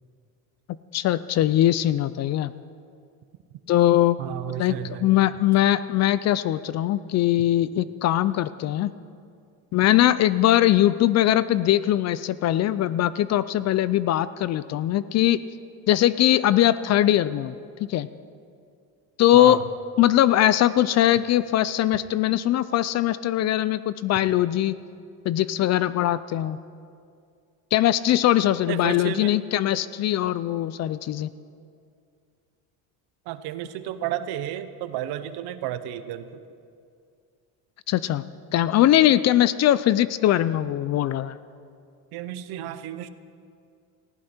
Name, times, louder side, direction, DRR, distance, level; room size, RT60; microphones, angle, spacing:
voice 1, 0.9-2.5 3.7-4.3 4.6-8.9 9.7-15.4 15.9-17.5 17.8-18.1 19.2-19.6 20.0-24.7 25.3-26.6 27.7-31.3 37.9-38.2 38.5-41.4, left 13 dB, 40° left, 16 dB, 0.4 m, -21 dB
voice 2, 4.2-5.1 19.3-19.6 28.7-29.3 33.2-36.4 42.1-43.1, right 12 dB, 65° right, 12 dB, 1.0 m, -32 dB
19.0 x 15.0 x 4.4 m, 2.3 s
cardioid pair, 120°, 41 cm